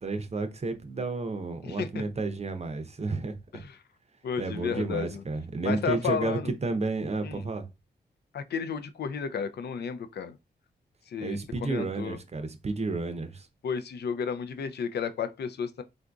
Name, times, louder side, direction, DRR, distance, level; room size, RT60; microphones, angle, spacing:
voice 1, 0.0-3.6 4.4-7.7 11.2-13.5, right 3 dB, 35° right, 0.6 m, -31 dB
voice 2, 1.6-2.0 3.5-3.7 4.2-5.2 5.6-6.5 7.2-7.5 8.3-10.4 11.1-12.2 13.6-15.8, left 6 dB, 65° left, 0.4 m, -32 dB
3.7 x 2.5 x 2.3 m
cardioid pair, 60°, 18 cm